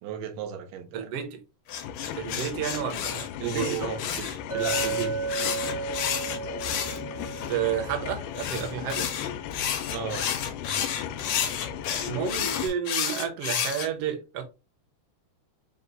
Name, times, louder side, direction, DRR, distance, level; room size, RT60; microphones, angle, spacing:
voice 1, 0.0-1.1 3.4-5.2 9.9-10.3, right 6 dB, 90° right, 2.3 m, -34 dB
voice 2, 0.9-1.4 2.2-3.9 7.5-9.1 12.1-14.4, right 8 dB, 70° right, 1.5 m, -31 dB
sound 1, 1.7-12.7, left 9 dB, 90° left, 2.1 m, -36 dB
sound 2, 1.7-7.5 8.3-13.9, left 8 dB, 75° left, 1.4 m, -31 dB
Chink clink, 4.5-8.9, right 6 dB, 10° right, 0.4 m, -34 dB
5.2 x 2.1 x 3.9 m
omnidirectional pair, 3.6 m